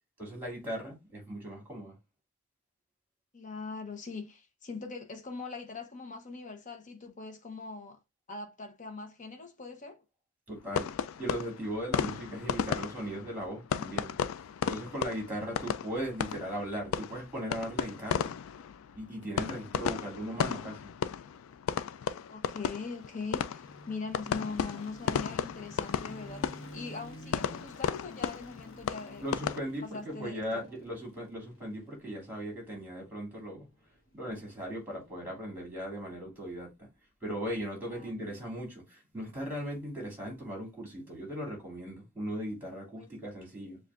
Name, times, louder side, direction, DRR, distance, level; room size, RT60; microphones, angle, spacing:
voice 1, 0.2-2.0 10.5-10.9 11.2-14.1 14.7-18.3 18.9-20.9 29.2-33.7 34.1-36.7 37.2-43.8, equal, 10° right, 2.6 m, -38 dB
voice 2, 3.3-8.0 8.3-10.0 15.4-15.6 22.3-29.2 29.9-30.6 37.9-38.1 43.0-43.1, left 4 dB, 40° left, 0.9 m, -41 dB
sound 1, 10.7-29.6, left 7 dB, 85° left, 0.3 m, -35 dB
sound 2, 22.6-36.7, equal, 65° left, 1.1 m, -52 dB
7.0 x 2.5 x 2.4 m
head